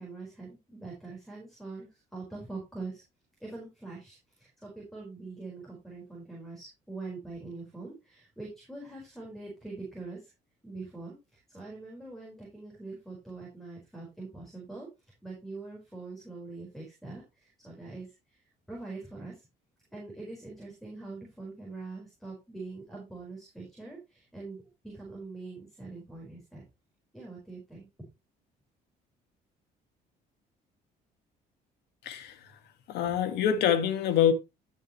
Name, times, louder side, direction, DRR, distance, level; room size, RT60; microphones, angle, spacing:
voice 1, 0.0-3.0 3.4-10.3 10.6-14.9 15.2-18.4 18.7-19.4 19.9-26.6 27.1-27.9, right 3 dB, ahead, 4.8 m, -43 dB
voice 2, 32.0-32.4 32.9-34.3, left 9 dB, 80° left, 1.9 m, -25 dB
13.0 x 6.3 x 3.1 m
cardioid pair, 110°, 17 cm